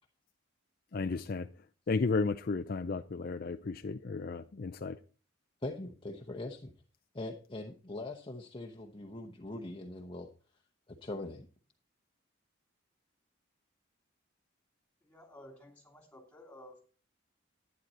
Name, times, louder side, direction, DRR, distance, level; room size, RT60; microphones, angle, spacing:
voice 1, 0.9-1.5 1.9-5.0, left 4 dB, 45° left, 0.5 m, -33 dB
voice 2, 5.6-6.7 7.1-10.3 10.9-11.5, left 2 dB, 25° left, 0.9 m, -42 dB
voice 3, 15.0-16.8, left 1 dB, 10° left, 3.1 m, -54 dB
12.0 x 9.5 x 4.2 m
head